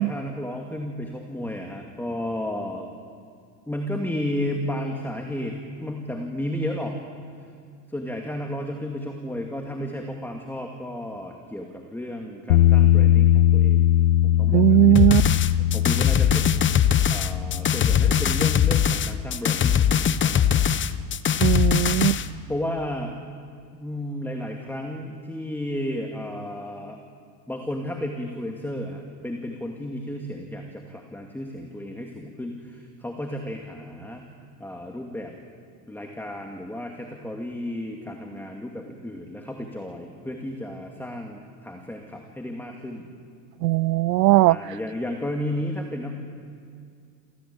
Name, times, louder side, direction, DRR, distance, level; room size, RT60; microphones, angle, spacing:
voice 1, 0.0-2.9 3.7-7.0 7.9-13.9 14.2-15.1 15.7-16.7 17.1-20.8 22.2-23.1 23.7-27.0 27.5-34.2 34.6-35.3 35.9-43.1 44.5-46.1, left 1 dB, 5° left, 2 dB, 2.5 m, -33 dB
Bass guitar, 12.5-18.7, left 12 dB, 75° left, 0.8 m, -20 dB
voice 2, 14.5-15.2 21.4-22.2 43.6-44.6, right 19 dB, 75° right, 25 dB, 0.6 m, -18 dB
sound 1, 15.0-22.3, left 8 dB, 25° left, 0.9 m, -21 dB
28.5 x 15.0 x 8.7 m, 2.3 s
hypercardioid pair, 95°, 50 cm